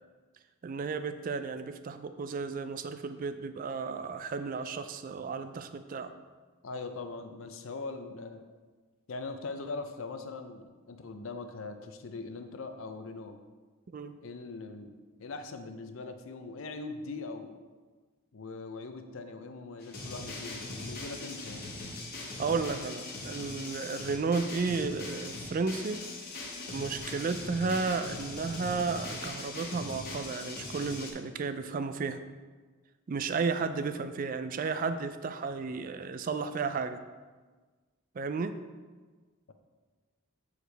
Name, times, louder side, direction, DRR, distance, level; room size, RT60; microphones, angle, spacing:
voice 1, 0.6-6.1 13.9-14.1 22.4-26.0 26.7-32.2 33.1-37.0 38.1-38.5, right 4 dB, 40° right, 10 dB, 0.3 m, -33 dB
voice 2, 6.6-8.4 9.1-13.4 14.2-14.9 15.2-17.6 18.3-21.7 33.8-33.9, left 3 dB, 65° left, 7 dB, 0.6 m, -41 dB
sound 1, 19.8-31.1, left 2 dB, 45° left, 1.2 m, -40 dB
8.0 x 4.7 x 3.3 m, 1.4 s
head